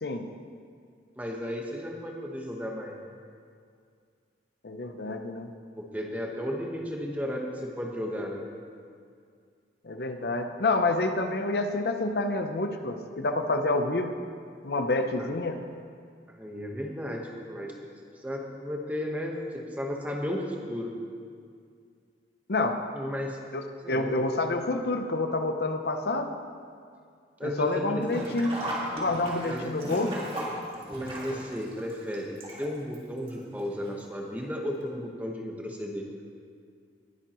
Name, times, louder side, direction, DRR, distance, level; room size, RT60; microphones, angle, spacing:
voice 1, 1.2-2.9 5.8-8.4 15.2-15.3 16.3-20.9 22.9-23.4 23.8-24.1 27.4-28.0 29.4-29.7 30.9-36.1, equal, 10° right, 0 dB, 1.2 m, -34 dB
voice 2, 4.6-5.5 9.8-14.1 14.6-15.6 22.5-22.8 23.5-23.6 23.9-26.3 27.4-28.5 28.9-30.1, left 2 dB, 65° left, 6 dB, 0.6 m, -28 dB
Sink (filling or washing), 28.0-33.0 33.3-33.4 34.4-34.5 34.8-34.9, right 1 dB, 30° right, 2.0 m, -36 dB
19.5 x 9.2 x 3.0 m, 2.2 s
head